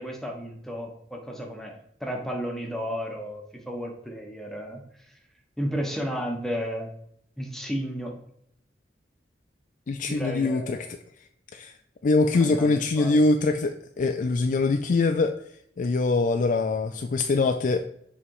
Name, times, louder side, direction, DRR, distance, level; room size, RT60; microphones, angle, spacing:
voice 1, 0.0-4.8 5.6-6.9 7.4-8.2 10.1-10.8 12.3-13.2, equal, ahead, 1 dB, 1.1 m, -33 dB
voice 2, 9.9-10.9 11.5-11.7 12.0-15.4 15.8-17.8, left 3 dB, 45° left, 6 dB, 0.4 m, -23 dB
7.4 x 3.4 x 4.7 m, 0.70 s
head